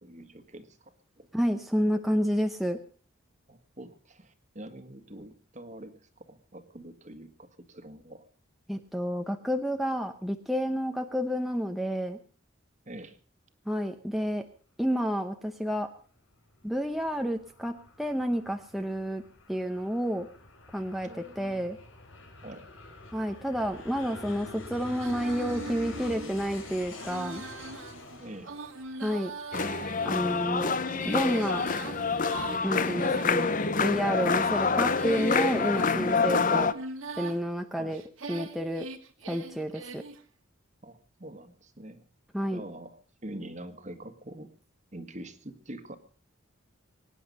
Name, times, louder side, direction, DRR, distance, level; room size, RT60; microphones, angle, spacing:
voice 1, 0.0-1.3 3.5-8.2 12.9-13.2 21.0-21.7 22.4-22.7 28.2-28.5 37.8-37.9 40.8-42.0 42.5-44.5 44.9-46.0, right 1 dB, 35° right, 9 dB, 1.6 m, -45 dB
voice 2, 1.3-2.8 8.7-12.2 13.7-14.5 14.8-15.9 16.6-19.2 19.5-20.3 20.7-21.8 23.1-27.4 29.0-29.3 30.0-30.7 31.0-31.6 32.6-33.5 33.8-36.7 37.2-38.0 38.3-38.9 39.3-40.0 42.3-42.6, equal, ahead, 4 dB, 0.8 m, -30 dB
Aircraft, 16.5-29.8, left 2 dB, 75° left, 4.7 m, -46 dB
Female singing, 24.9-33.8 34.4-37.4 37.9-40.2, right 3 dB, 80° right, 1.9 m, -42 dB
sound 1, 29.5-36.7, left 4 dB, 40° left, 0.8 m, -27 dB
24.0 x 10.0 x 5.4 m, 0.43 s
head